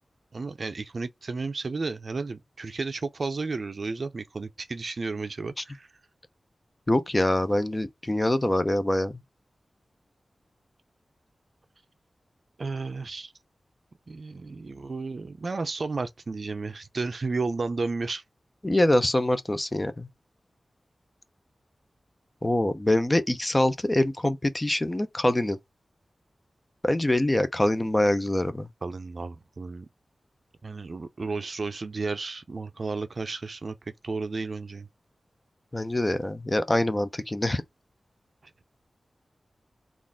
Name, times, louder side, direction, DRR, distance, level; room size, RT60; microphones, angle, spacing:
voice 1, 0.3-5.9 12.6-13.3 14.1-18.2 28.8-29.9 30.6-33.8 34.0-34.9, right 3 dB, 55° right, 0.5 m, -33 dB
voice 2, 6.9-9.2 18.6-20.1 22.4-25.6 26.8-28.7 35.7-37.6, left 1 dB, 20° left, 0.6 m, -24 dB
4.0 x 2.5 x 3.5 m
wide cardioid pair, 95°, 0 cm